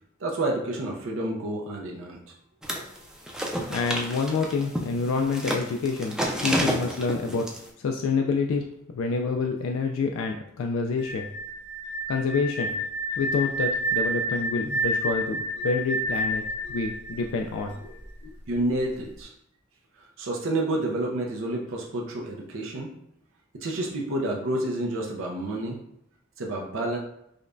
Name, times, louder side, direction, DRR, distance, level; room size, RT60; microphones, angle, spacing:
voice 1, 0.2-2.3 18.5-19.3 20.2-22.9 23.5-25.8 26.4-27.0, right 1 dB, 80° right, -1 dB, 0.6 m, -29 dB
sound 1, 2.6-3.0 3.3-7.6, equal, 5° right, 0.4 m, -29 dB
voice 2, 3.7-7.5 7.8-11.3 12.1-12.7 13.2-16.4 16.7-17.7, left 4 dB, 80° left, 3 dB, 0.3 m, -27 dB
sound 2, 11.0-17.9, right 1 dB, 60° right, 1.0 m, -29 dB
5.0 x 2.2 x 2.5 m, 0.76 s
head